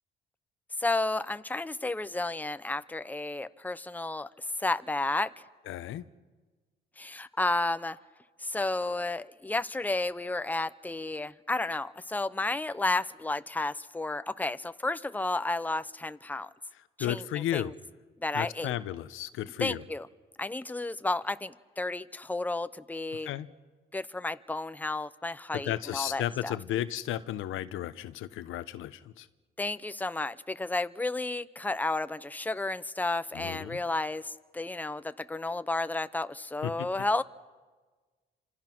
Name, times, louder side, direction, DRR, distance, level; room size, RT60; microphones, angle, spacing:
voice 1, 0.8-4.3 4.6-5.3 7.0-8.0 8.4-16.5 17.0-17.7 18.2-18.7 19.6-20.1 20.4-23.3 23.9-26.5 29.6-37.2, left 2 dB, 10° left, 13 dB, 0.8 m, -32 dB
voice 2, 5.7-6.0 17.0-17.7 18.3-19.8 23.2-23.5 25.6-29.3 33.3-33.8 36.6-36.7, left 12 dB, 85° left, 13 dB, 1.0 m, -33 dB
29.5 x 26.5 x 6.1 m, 1.3 s
cardioid pair, 90°, 20 cm